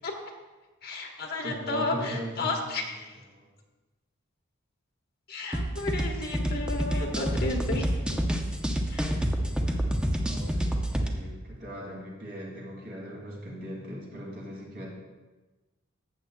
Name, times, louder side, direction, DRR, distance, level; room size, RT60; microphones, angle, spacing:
voice 1, 0.8-3.1 5.3-7.9 8.9-9.2, left 2 dB, 50° left, 1 dB, 1.3 m, -32 dB
voice 2, 1.4-3.5 9.5-14.9, equal, 55° right, -3 dB, 2.5 m, -40 dB
sound 1, 5.5-11.1, equal, 5° right, 0.6 m, -28 dB
14.0 x 7.7 x 2.3 m, 1.2 s
head